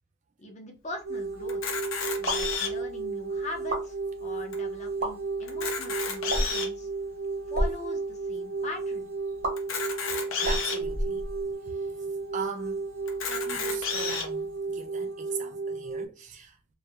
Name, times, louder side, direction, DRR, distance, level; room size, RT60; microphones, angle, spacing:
voice 1, 0.4-1.6 2.2-6.9 7.5-9.1, left 2 dB, 35° left, 0.6 m, -41 dB
sound 1, 1.0-16.1, right 4 dB, 90° right, 0.6 m, -33 dB
Camera, 1.5-2.9 3.5-3.6 3.8-4.0 4.5-4.6 5.4-6.8 7.4-7.5 9.6-10.8 11.5-11.6 11.9-12.0 13.1-14.3, left 6 dB, 80° left, 0.6 m, -31 dB
sound 2, 2.2-2.5 3.5-3.8 4.9-5.1 6.3-6.6 7.4-7.7 9.4-9.5 10.4-11.6, right 1 dB, 55° right, 1.0 m, -30 dB
voice 2, 10.4-11.2 11.6-12.0 12.3-12.8 13.3-16.6, right 5 dB, 35° right, 0.4 m, -40 dB
2.3 x 2.0 x 2.7 m
head